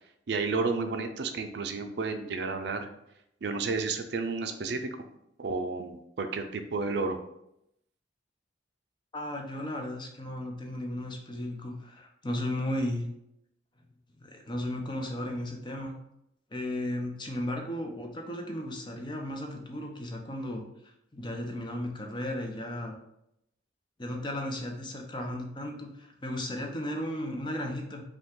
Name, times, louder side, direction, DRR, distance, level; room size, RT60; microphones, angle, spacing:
voice 1, 0.3-2.9 3.4-4.9 5.4-7.2, right 4 dB, 65° right, 7 dB, 0.5 m, -31 dB
voice 2, 9.1-13.1 14.2-15.9 16.5-20.6 21.1-22.9 24.0-28.0, left 1 dB, 25° left, 2 dB, 0.6 m, -35 dB
5.4 x 2.3 x 3.7 m, 0.79 s
head